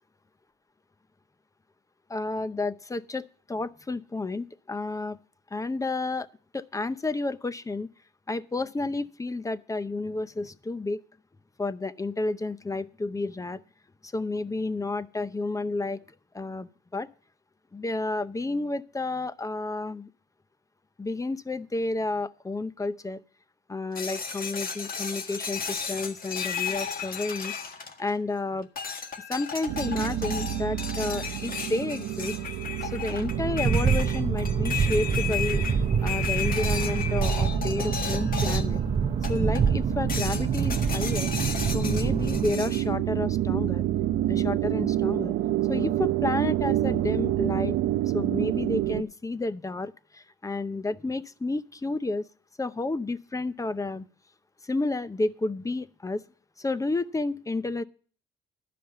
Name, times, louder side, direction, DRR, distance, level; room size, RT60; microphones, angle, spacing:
voice 1, 2.1-5.2 5.5-6.3 6.5-7.9 8.3-11.0 11.6-13.6 14.0-16.0 16.3-17.1 17.7-20.1 21.0-23.2 23.7-27.5 28.0-28.7 29.3-32.4 32.8-35.6 36.0-38.8 39.3-41.3 41.7-43.8 44.3-45.3 45.7-47.8 48.1-52.3 52.6-54.1 54.6-56.2 56.6-57.8, left 2 dB, 15° left, 14 dB, 0.6 m, -31 dB
sound 1, 23.9-28.3 28.8-38.8 39.2-39.7 40.1-42.8, left 6 dB, 45° left, 1.7 m, -34 dB
sound 2, 29.7-49.0, right 13 dB, 85° right, 0.6 m, -29 dB
sound 3, 33.3-42.5, right 6 dB, 30° right, 0.6 m, -27 dB
12.0 x 5.1 x 8.0 m, 0.42 s
cardioid pair, 90°, 20 cm